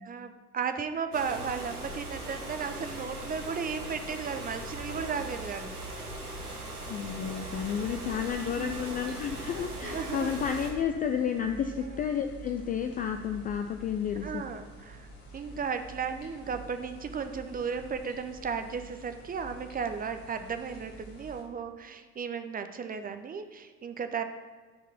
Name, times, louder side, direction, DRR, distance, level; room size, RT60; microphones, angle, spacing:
voice 1, 0.0-5.7 8.6-8.9 9.8-10.6 11.7-12.0 14.2-15.1 15.3-24.2, right 6 dB, 20° right, 8 dB, 0.6 m, -35 dB
sound 1, 1.1-10.7, right 2 dB, 85° right, 1.4 m, -39 dB
voice 2, 6.9-14.4, left 8 dB, 20° left, 6 dB, 0.4 m, -31 dB
sound 2, 7.5-21.4, right 2 dB, 60° left, 2.1 m, -48 dB
9.2 x 4.7 x 7.0 m, 1.4 s
figure-of-eight pair, 60°, 44 cm